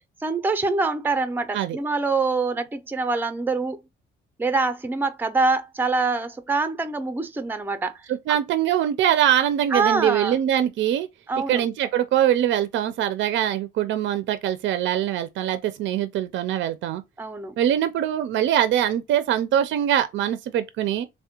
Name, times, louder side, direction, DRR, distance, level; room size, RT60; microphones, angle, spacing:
voice 1, 0.2-3.8 4.4-7.9 9.7-10.4 11.3-11.6 17.2-17.5, right 3 dB, 10° right, 0.5 m, -25 dB
voice 2, 8.1-11.1 11.5-17.0 17.6-21.1, right 11 dB, 70° right, 0.4 m, -23 dB
3.3 x 2.1 x 2.8 m
cardioid pair, 90°, 20 cm